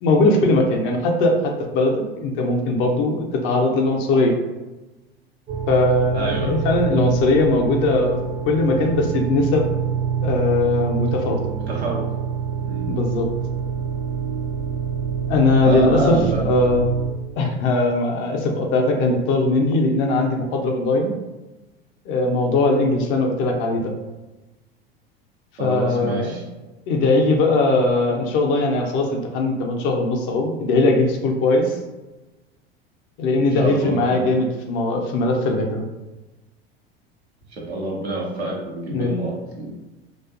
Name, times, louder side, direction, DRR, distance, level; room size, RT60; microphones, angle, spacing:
voice 1, 0.0-4.4 5.7-8.2 8.4-9.7 10.2-11.4 12.9-13.3 15.3-16.2 16.4-16.8 17.4-21.1 22.1-24.0 25.6-26.4 26.9-31.8 33.2-35.9 38.9-39.1, left 2 dB, 40° left, 2 dB, 0.5 m, -20 dB
sound 1, 5.5-17.1, right 7 dB, 25° right, 0.4 m, -26 dB
voice 2, 6.1-6.5 11.5-12.0 12.6-12.9 15.6-16.4 25.6-26.4 33.5-34.4 37.5-39.7, right 2 dB, 85° right, -3 dB, 0.7 m, -27 dB
2.4 x 2.2 x 2.4 m, 1.1 s
figure-of-eight pair, 80°, 31 cm